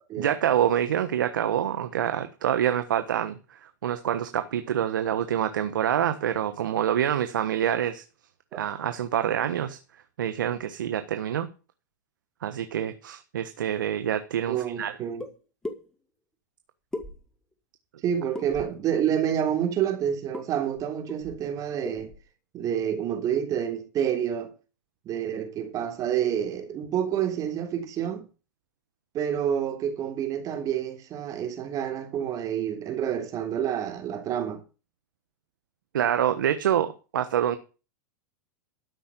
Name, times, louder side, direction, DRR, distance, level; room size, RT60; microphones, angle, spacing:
voice 1, 0.2-8.0 8.5-9.8 10.2-11.5 12.4-15.0 35.9-37.6, right 10 dB, 85° right, 1.3 m, -26 dB
voice 2, 14.5-15.2 18.0-22.1 22.5-24.5 25.0-28.2 29.1-34.6, right 9 dB, 35° right, 3.3 m, -28 dB
sound 1, 15.2-15.3 15.6-15.8 16.9-17.5 18.3-18.8 20.3-20.5 20.8-20.9 21.1-21.5 21.8-22.2, left 2 dB, 5° left, 2.2 m, -37 dB
13.0 x 5.7 x 8.4 m
hypercardioid pair, 130°, 10 cm